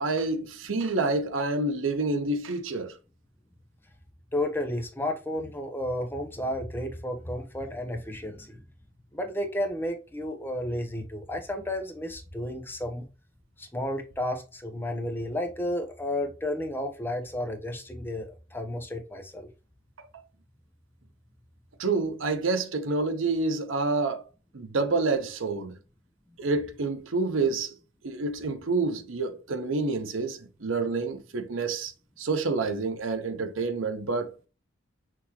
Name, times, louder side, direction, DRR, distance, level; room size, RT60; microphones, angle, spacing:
voice 1, 0.0-2.9 21.8-24.2 24.5-25.7 26.4-27.7 28.0-31.9 32.2-34.5, right 3 dB, 90° right, 0.7 m, -28 dB
voice 2, 4.3-8.6 9.1-13.0 13.6-19.5, left 1 dB, 10° left, 0.6 m, -32 dB
6.0 x 2.8 x 2.9 m
head